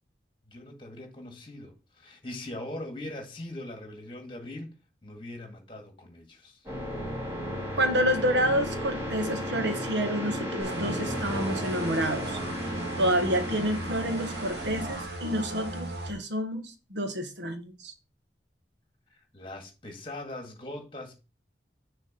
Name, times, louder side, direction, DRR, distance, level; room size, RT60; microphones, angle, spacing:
voice 1, 0.5-4.7 5.0-6.6 19.1-21.2, left 1 dB, 30° left, 1.7 m, -41 dB
sound 1, 6.7-15.1, equal, 15° right, 2.3 m, -34 dB
voice 2, 7.8-12.4 13.0-17.9, equal, 85° right, 1.2 m, -29 dB
sound 2, 10.6-16.1, right 1 dB, 60° right, 1.7 m, -37 dB
6.6 x 3.9 x 5.3 m
head